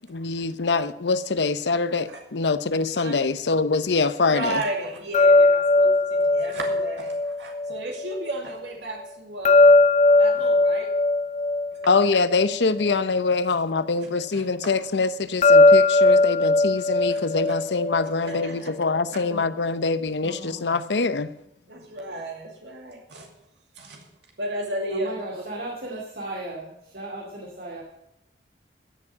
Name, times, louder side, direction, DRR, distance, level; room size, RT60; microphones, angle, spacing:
voice 1, 0.1-4.6 11.9-21.3, left 4 dB, 80° left, 0.7 m, -24 dB
voice 2, 4.3-9.7 10.1-10.9 14.3-14.7 17.1-17.2 18.2-18.7 21.7-23.3 23.7-24.1 24.4-25.4, right 1 dB, 85° right, 2.4 m, -33 dB
sound 1, 5.1-8.2 9.4-13.0 15.4-18.5, left 2 dB, 40° left, 0.7 m, -19 dB
voice 3, 20.2-20.8 24.9-27.8, right 1 dB, 55° right, 2.4 m, -36 dB
15.0 x 7.3 x 7.2 m
head